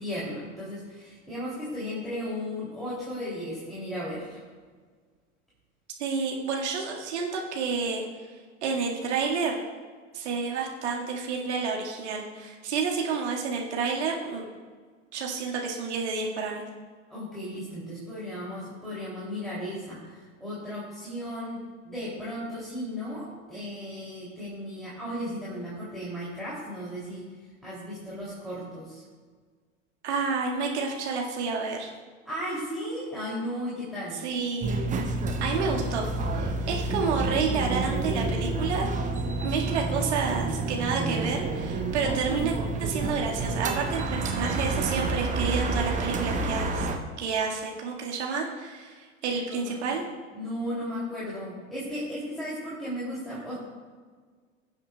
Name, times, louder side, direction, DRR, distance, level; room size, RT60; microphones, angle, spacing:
voice 1, 0.0-4.4 17.1-21.6 21.8-27.3 27.6-29.0 32.2-34.2 49.5-49.9 50.3-53.5, equal, ahead, -9 dB, 2.9 m, -35 dB
voice 2, 6.0-8.1 8.6-9.6 10.1-14.4 15.1-16.6 30.0-31.9 34.2-34.7 35.4-36.1 36.3-38.9 39.4-42.5 42.8-46.9 47.2-50.0, right 5 dB, 60° right, -1 dB, 2.0 m, -29 dB
sound 1, 34.6-47.0, right 3 dB, 20° right, 1.0 m, -29 dB
18.5 x 7.8 x 2.3 m, 1.5 s
figure-of-eight pair, 85°, 38 cm